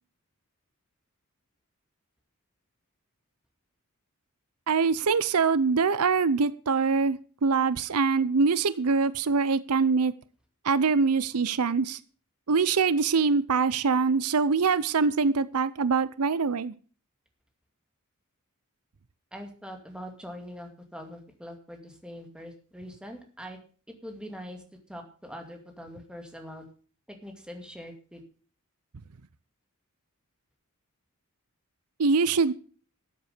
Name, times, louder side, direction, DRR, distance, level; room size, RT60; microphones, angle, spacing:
voice 1, 4.7-10.1 10.6-12.0 12.5-16.7 32.0-32.5, right 4 dB, 80° right, 0.7 m, -24 dB
voice 2, 19.3-23.6 24.0-24.6 24.9-26.6 27.1-28.2, equal, 5° right, 2.3 m, -43 dB
13.5 x 8.0 x 6.7 m
head